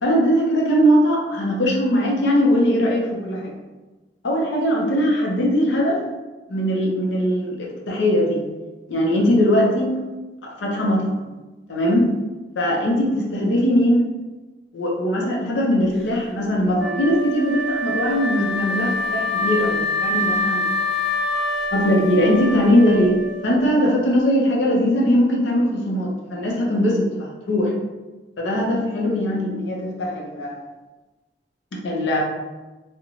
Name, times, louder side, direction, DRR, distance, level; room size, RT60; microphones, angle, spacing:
voice 1, 0.0-3.6 4.2-6.0 6.5-8.4 8.9-10.0 10.4-11.2 11.7-12.1 12.6-14.0 14.7-20.7 21.7-27.7 28.4-30.6 31.7-32.2, equal, 85° left, -1 dB, 0.6 m, -20 dB
Wind instrument woodwind instrument, 16.8-23.8, left 1 dB, ahead, 0.4 m, -25 dB
2.9 x 2.1 x 2.4 m, 1.2 s
head